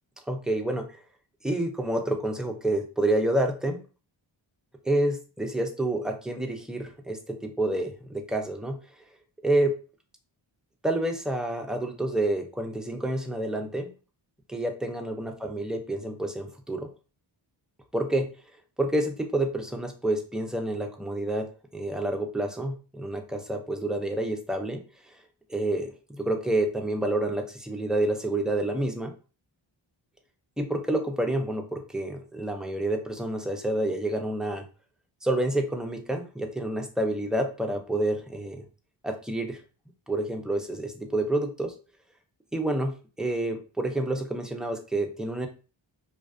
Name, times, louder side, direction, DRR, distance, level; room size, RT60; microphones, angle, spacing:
voice 1, 0.3-1.0 1.4-3.8 4.8-8.8 9.4-9.7 10.8-13.9 14.5-16.9 17.9-18.3 18.8-21.4 21.7-24.8 25.5-29.1 30.6-34.6 35.2-38.6 39.0-39.6 40.1-41.7 42.5-45.5, right 1 dB, ahead, 3 dB, 0.4 m, -28 dB
2.5 x 2.3 x 2.3 m, 0.34 s
cardioid pair, 70°, 48 cm